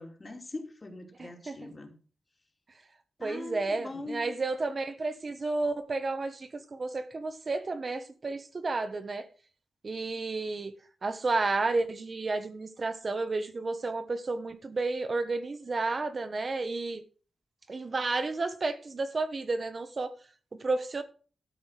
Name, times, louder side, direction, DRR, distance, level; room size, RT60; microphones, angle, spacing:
voice 1, 0.0-2.0 3.2-4.3, left 2 dB, 30° left, 2.7 m, -42 dB
voice 2, 1.2-1.6 3.2-9.3 9.8-10.7 11.0-17.0 17.7-20.1 20.6-21.0, right 3 dB, 40° right, 1.2 m, -31 dB
13.0 x 5.7 x 6.5 m
wide cardioid pair, 110°, 0 cm